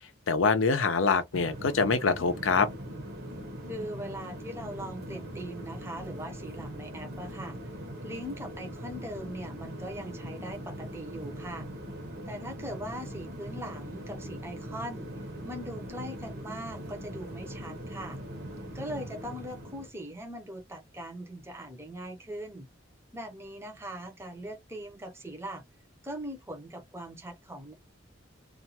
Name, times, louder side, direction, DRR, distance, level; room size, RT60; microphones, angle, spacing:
voice 1, 0.3-2.7, left 4 dB, 85° left, 0.6 m, -25 dB
sound 1, 1.3-19.9, equal, 55° right, 0.8 m, -41 dB
voice 2, 3.7-7.6 8.0-11.7 12.3-15.1 15.4-18.2 18.7-22.7 23.1-25.6 26.0-27.7, right 1 dB, 15° right, 0.6 m, -40 dB
2.4 x 2.2 x 2.7 m
head